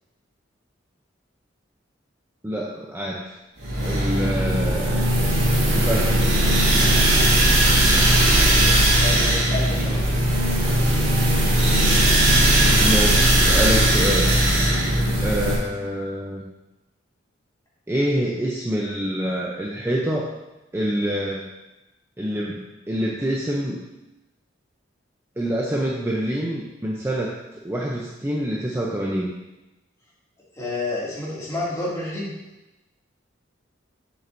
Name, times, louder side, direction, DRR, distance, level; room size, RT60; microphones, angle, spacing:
voice 1, 2.4-3.3 3.8-5.1 5.7-6.2 12.8-14.3 15.2-16.4 17.9-20.3 20.7-21.5 22.2-23.8 25.4-29.3, equal, 15° right, -3 dB, 0.6 m, -26 dB
sound 1, 3.6-15.5, right 1 dB, 90° right, 1.8 m, -18 dB
voice 2, 6.9-7.3 9.0-10.0 30.6-32.3, left 2 dB, 15° left, -7 dB, 2.3 m, -29 dB
7.8 x 7.1 x 2.6 m, 1.0 s
head